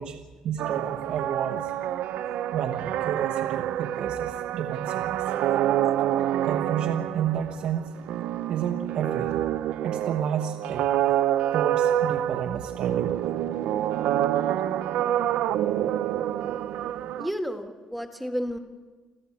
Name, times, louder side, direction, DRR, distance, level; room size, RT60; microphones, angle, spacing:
voice 1, 0.0-1.7 2.5-5.3 6.4-8.0 8.5-9.5 9.8-10.9 11.5-13.2, right 9 dB, 65° right, 7 dB, 1.1 m, -31 dB
sound 1, 0.6-17.3, right 11 dB, 85° right, 0.7 m, -27 dB
voice 2, 17.2-18.6, equal, ahead, 6 dB, 1.5 m, -31 dB
29.0 x 13.5 x 8.6 m, 1.4 s
cardioid pair, 175°, 2 cm